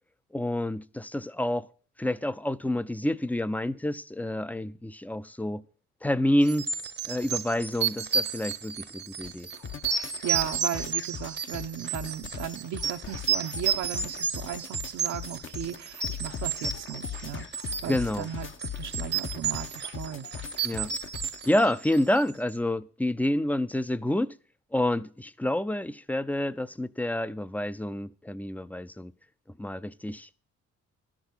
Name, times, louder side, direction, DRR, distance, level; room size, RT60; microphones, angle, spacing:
voice 1, 0.3-1.7 2.0-5.6 6.0-6.7 7.1-9.5 17.9-18.3 20.6-20.9 21.5-24.4 24.7-29.1 29.6-30.3, left 1 dB, 5° left, 0.5 m, -28 dB
sound 1, 6.5-22.3, right 6 dB, 35° right, 0.8 m, -32 dB
sound 2, 9.2-21.6, left 8 dB, 40° left, 1.0 m, -40 dB
voice 2, 9.9-17.5 17.8-18.5 18.7-20.3, right 10 dB, 70° right, 0.8 m, -36 dB
12.5 x 6.2 x 8.3 m
cardioid pair, 90°, 30 cm